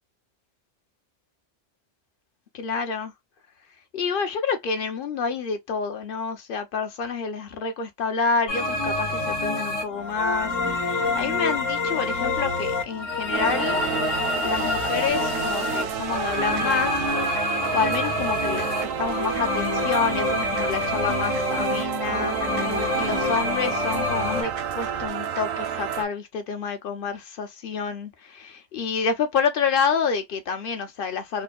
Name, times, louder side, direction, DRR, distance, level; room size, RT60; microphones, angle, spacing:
voice 1, 2.5-3.1 3.9-13.8 14.3-17.1 17.7-22.4 22.6-31.4, left 5 dB, 50° left, 0.8 m, -28 dB
sound 1, 8.5-24.4, left 2 dB, 85° left, 1.8 m, -27 dB
sound 2, 13.3-26.0, right 8 dB, 60° right, 0.6 m, -30 dB
4.3 x 2.1 x 2.3 m
omnidirectional pair, 1.3 m